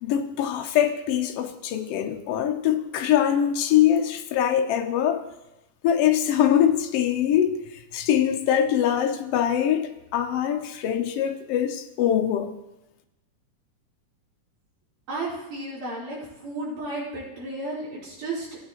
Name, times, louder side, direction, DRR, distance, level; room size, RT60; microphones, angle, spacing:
voice 1, 0.0-5.2 5.8-12.5, left 10 dB, 85° left, 1.3 m, -23 dB
voice 2, 15.1-18.5, right 2 dB, 80° right, 5.6 m, -33 dB
16.0 x 9.4 x 3.0 m
omnidirectional pair, 3.6 m